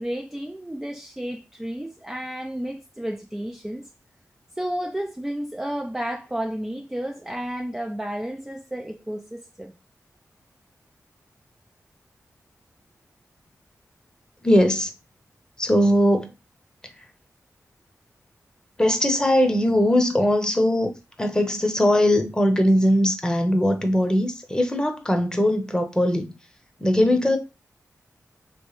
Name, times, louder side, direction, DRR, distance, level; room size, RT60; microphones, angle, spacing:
voice 1, 0.0-3.9 4.6-9.7, equal, 10° right, 0.3 m, -32 dB
voice 2, 14.4-14.9 15.6-16.3 18.8-26.3 26.8-27.4, left 1 dB, 15° left, 0.8 m, -20 dB
3.1 x 3.1 x 3.1 m
wide cardioid pair, 70°, 6 cm